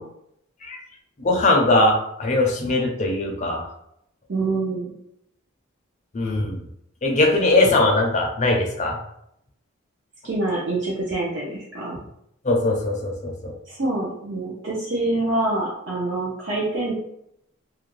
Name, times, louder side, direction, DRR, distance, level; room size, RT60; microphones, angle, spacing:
voice 1, 1.2-3.7 6.1-6.6 7.0-9.0 12.4-13.5, left 2 dB, 35° left, 1 dB, 0.5 m, -20 dB
voice 2, 4.3-4.9 10.2-12.0 13.7-16.9, right 2 dB, 55° right, -5 dB, 0.6 m, -26 dB
2.5 x 2.1 x 3.0 m, 0.75 s
head